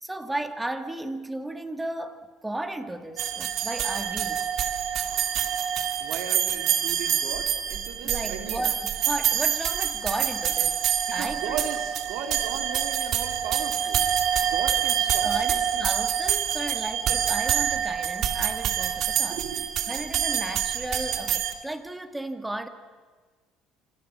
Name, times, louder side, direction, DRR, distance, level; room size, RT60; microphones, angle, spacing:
voice 1, 0.0-4.5 8.0-11.6 15.2-19.4 19.9-22.7, right 1 dB, 10° right, 8 dB, 2.1 m, -34 dB
sound 1, 3.2-21.5, right 9 dB, 60° right, 2.4 m, -26 dB
voice 2, 6.0-8.7 11.2-14.1 14.4-15.9 19.3-19.9, right 7 dB, 80° right, 5 dB, 3.8 m, -37 dB
27.5 x 27.0 x 7.3 m, 1.5 s
cardioid pair, 130°, 0 cm